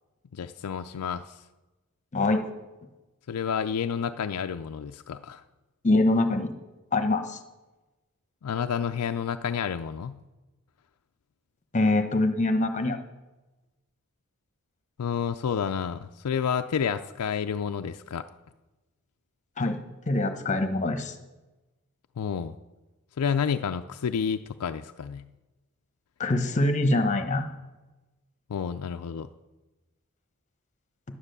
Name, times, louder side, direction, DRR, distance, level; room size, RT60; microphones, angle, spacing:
voice 1, 0.3-1.3 3.3-5.4 8.4-10.2 15.0-18.3 22.2-22.6 23.2-25.2 28.5-29.3, left 7 dB, 90° left, 7 dB, 0.4 m, -30 dB
voice 2, 2.1-2.4 5.8-6.5 6.9-7.4 11.7-13.0 19.6-19.8 20.1-21.1 26.2-27.5, left 2 dB, 35° left, 8 dB, 1.0 m, -24 dB
11.0 x 9.8 x 6.7 m, 1.1 s
head